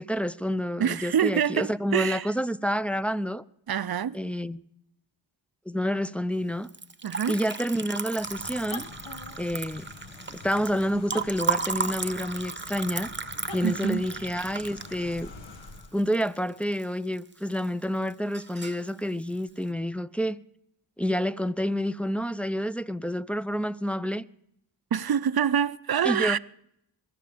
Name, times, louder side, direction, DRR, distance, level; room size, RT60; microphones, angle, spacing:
voice 1, 0.0-3.4 4.1-4.6 5.7-6.7 7.3-8.9 9.4-9.9 10.3-13.1 13.5-15.3 15.9-20.4 21.0-24.2 26.0-26.4, equal, 5° left, 0.5 m, -28 dB
voice 2, 0.8-2.3 3.7-4.2 7.0-7.4 13.6-14.0 24.9-26.4, right 8 dB, 55° right, 0.6 m, -26 dB
Liquid, 6.6-16.8 17.2-17.8 18.1-18.9, right 5 dB, 25° right, 0.9 m, -34 dB
sound 1, 8.1-16.0, left 3 dB, 80° left, 1.5 m, -44 dB
21.5 x 11.5 x 5.1 m
cardioid pair, 40°, 46 cm